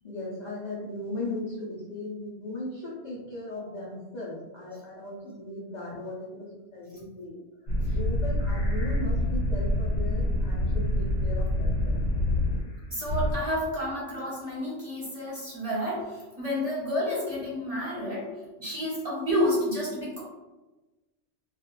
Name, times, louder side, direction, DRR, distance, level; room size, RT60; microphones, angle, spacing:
voice 1, 0.0-12.0, left 2 dB, 55° left, -7 dB, 0.5 m, -38 dB
sound 1, 7.7-12.7 13.0-13.3, left 1 dB, 70° left, 1.1 m, -26 dB
voice 2, 12.9-18.3 18.6-20.2, equal, 30° right, -7 dB, 0.8 m, -30 dB
2.4 x 2.3 x 3.0 m, 1.2 s
omnidirectional pair, 1.3 m